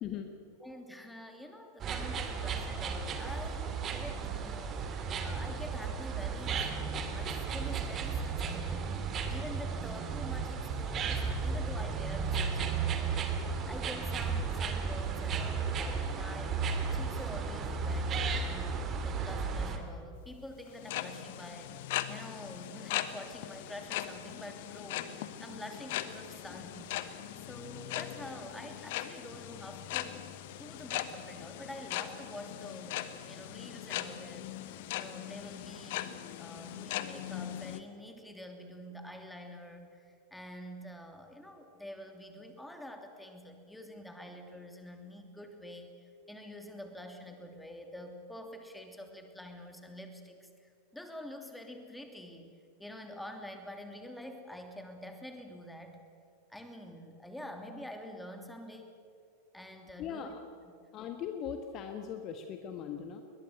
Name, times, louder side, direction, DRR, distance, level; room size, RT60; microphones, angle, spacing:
voice 1, 0.6-4.8 5.2-9.0 9.3-16.6 16.9-30.3 30.6-45.9 46.3-56.0 56.5-58.9 59.5-60.4 60.7-60.8, left 1 dB, 5° left, 5 dB, 3.0 m, -47 dB
sound 1, 1.8-19.8, right 5 dB, 30° right, 2.5 m, -34 dB
sound 2, 20.7-37.8, left 13 dB, 50° left, 1.2 m, -40 dB
voice 2, 60.0-60.4 60.9-63.2, left 8 dB, 35° left, 6 dB, 1.6 m, -39 dB
21.5 x 21.0 x 8.2 m, 2.3 s
figure-of-eight pair, 90°, 0 cm